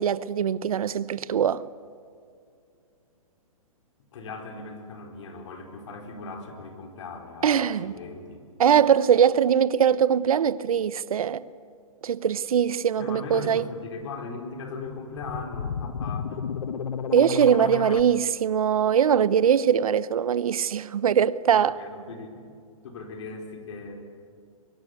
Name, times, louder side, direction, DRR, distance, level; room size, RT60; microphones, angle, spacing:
voice 1, 0.0-1.6 7.4-7.9 8.6-11.4 12.0-13.6 17.1-21.8, right 8 dB, 75° right, 0.9 m, -22 dB
voice 2, 4.1-8.4 13.0-16.5 21.6-22.4 22.8-24.1, left 3 dB, 55° left, 4.3 m, -38 dB
sound 1, 14.8-18.0, left 6 dB, 85° left, 1.3 m, -32 dB
24.5 x 21.5 x 8.3 m
hypercardioid pair, 155°, 18 cm